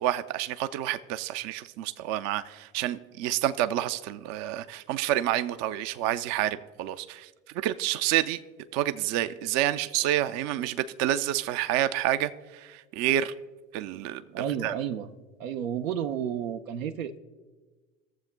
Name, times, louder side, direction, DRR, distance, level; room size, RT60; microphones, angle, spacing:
voice 1, 0.0-7.3 7.5-8.4 8.7-13.3 13.7-14.7, right 12 dB, 45° right, 11 dB, 0.5 m, -28 dB
voice 2, 14.3-15.1 15.4-17.2, right 9 dB, 85° right, 8 dB, 0.7 m, -31 dB
20.5 x 7.2 x 2.2 m, 1.3 s
hypercardioid pair, 80°, 39 cm